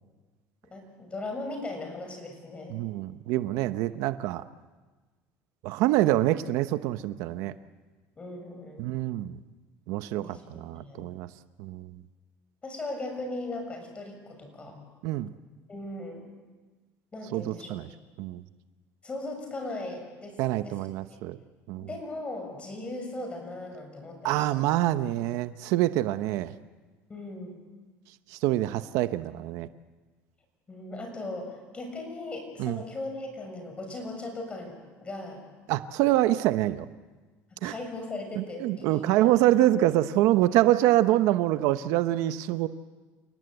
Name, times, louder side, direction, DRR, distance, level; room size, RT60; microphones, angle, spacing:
voice 1, 0.7-2.8 8.2-8.9 10.2-11.0 12.6-14.8 15.7-16.3 17.1-17.9 19.0-20.8 21.8-24.6 27.1-27.5 30.7-35.4 37.6-39.6, left 2 dB, 20° left, 4 dB, 6.8 m, -38 dB
voice 2, 2.7-4.4 5.6-7.5 8.8-9.4 9.9-11.3 11.6-12.0 15.0-15.3 17.3-17.9 18.2-18.4 20.4-21.4 21.7-21.9 24.2-26.5 28.3-29.7 32.6-32.8 35.7-36.9 37.6-37.7 38.4-42.7, right 15 dB, 75° right, 12 dB, 0.9 m, -25 dB
28.5 x 18.0 x 8.0 m, 1.3 s
cardioid pair, 125°, 5 cm